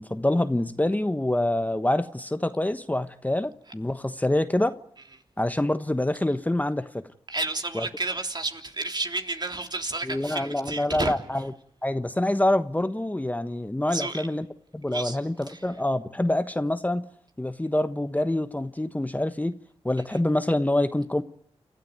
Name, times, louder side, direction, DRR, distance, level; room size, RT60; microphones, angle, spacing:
voice 1, 0.0-4.7 5.4-7.0 7.7-7.9 10.0-11.5 11.8-14.5 14.7-17.0 17.4-19.5 19.8-21.2, left 1 dB, 15° left, 1.2 m, -26 dB
voice 2, 7.3-11.1 13.9-14.2 14.9-15.2 15.5-15.6, right 3 dB, 40° right, 3.3 m, -31 dB
29.0 x 13.5 x 9.5 m
cardioid pair, 45°, 11 cm